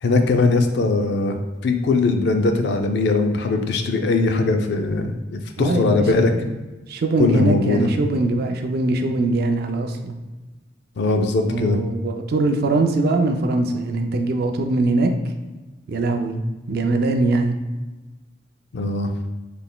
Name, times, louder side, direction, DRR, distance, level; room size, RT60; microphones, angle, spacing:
voice 1, 0.0-6.3 7.2-7.9 11.0-11.8 18.7-19.1, left 3 dB, 60° left, 6 dB, 0.4 m, -20 dB
voice 2, 5.6-6.5 6.9-10.1 11.4-15.1 15.9-16.4 16.7-17.6, right 2 dB, 50° right, 5 dB, 0.4 m, -22 dB
3.8 x 3.3 x 2.2 m, 1.2 s
head